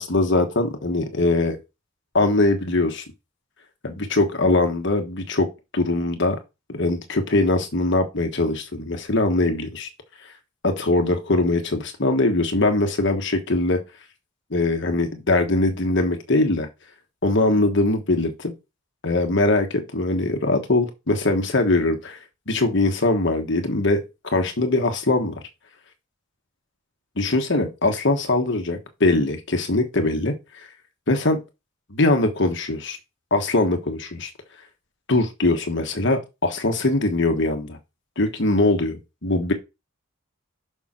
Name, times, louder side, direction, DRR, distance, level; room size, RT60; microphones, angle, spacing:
voice 1, 0.0-1.6 2.1-3.0 3.8-5.5 5.7-6.4 6.7-9.9 10.6-13.8 14.5-16.7 17.2-18.5 19.0-22.2 22.5-24.0 24.3-25.3 27.2-30.7 31.1-31.4 31.9-33.0 33.3-34.3 35.1-37.8 38.2-39.5, left 2 dB, 55° left, 1.3 m, -21 dB
7.0 x 6.0 x 4.3 m
head